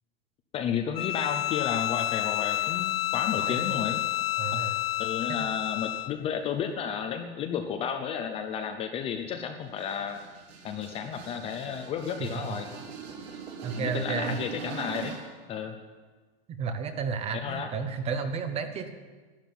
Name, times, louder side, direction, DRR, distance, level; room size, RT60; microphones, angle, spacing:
voice 1, 0.5-4.0 5.0-10.2 10.6-12.7 13.8-15.2 15.5-15.8 17.3-17.7, left 7 dB, 20° left, 5 dB, 0.7 m, -32 dB
Bowed string instrument, 0.9-6.2, left 16 dB, 65° left, 0.6 m, -29 dB
voice 2, 3.4-3.8 4.4-4.8 5.4-5.5 13.6-14.4 16.6-18.9, right 6 dB, 20° right, 9 dB, 0.9 m, -32 dB
sound 1, 9.6-15.4, right 6 dB, 70° right, 3.7 m, -41 dB
12.5 x 10.5 x 9.3 m, 1.3 s
supercardioid pair, 160°, 32 cm